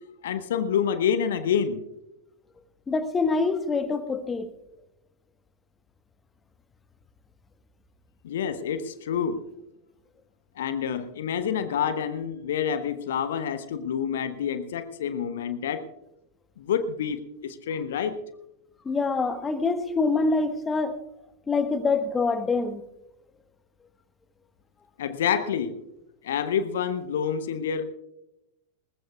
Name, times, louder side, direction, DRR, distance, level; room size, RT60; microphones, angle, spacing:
voice 1, 0.2-1.8 8.2-9.4 10.6-15.9 16.6-18.2 25.0-25.8 26.2-27.8, left 8 dB, 60° left, 11 dB, 0.9 m, -28 dB
voice 2, 2.9-4.5 18.8-21.0 21.5-22.8, left 4 dB, 15° left, 10 dB, 1.2 m, -25 dB
20.5 x 20.0 x 2.3 m, 0.90 s
figure-of-eight pair, 90°, 0 cm